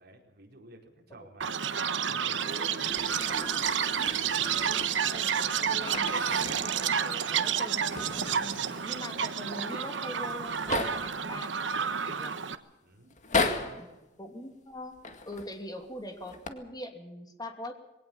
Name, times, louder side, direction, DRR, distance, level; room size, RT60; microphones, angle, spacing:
voice 1, 0.0-2.8 4.6-4.7 12.8-13.1 13.5-13.8, right 1 dB, 55° right, 1 dB, 4.7 m, -50 dB
Chirp tweet, 1.4-12.6, right 7 dB, 75° right, 1.1 m, -30 dB
sound 1, 2.8-5.3 5.8-6.8 7.1-7.2 7.6-9.2 9.9-10.0 10.2-11.2 11.9-12.4 13.1-13.9 14.9-15.6 16.2-16.5, left 3 dB, 40° left, 2.0 m, -36 dB
voice 2, 4.4-12.3 13.6-13.9 14.2-15.0 15.2-17.8, left 1 dB, 20° left, 5 dB, 2.8 m, -43 dB
21.0 x 18.0 x 7.3 m, 1.0 s
head